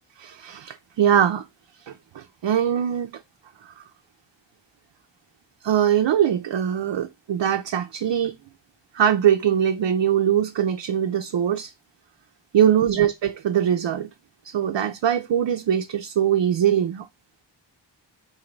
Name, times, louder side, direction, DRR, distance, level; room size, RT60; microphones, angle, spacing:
voice 1, 0.2-1.4 1.9-3.1 5.6-8.3 8.9-11.7 12.5-14.1 14.4-17.1, right 9 dB, 80° right, 0.5 m, -22 dB
3.9 x 2.7 x 3.1 m
wide cardioid pair, 55°, 43 cm